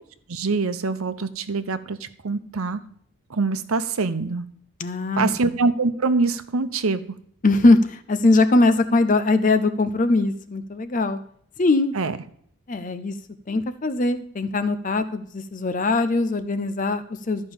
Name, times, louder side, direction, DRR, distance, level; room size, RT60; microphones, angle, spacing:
voice 1, 0.3-2.8 3.3-4.5 5.2-7.0 11.9-12.2, right 3 dB, 85° right, 12 dB, 0.8 m, -24 dB
voice 2, 4.8-5.3 7.4-11.2 11.6-11.9 12.7-13.2 13.5-17.5, left 2 dB, 40° left, 12 dB, 0.5 m, -21 dB
13.0 x 5.3 x 7.1 m, 0.64 s
head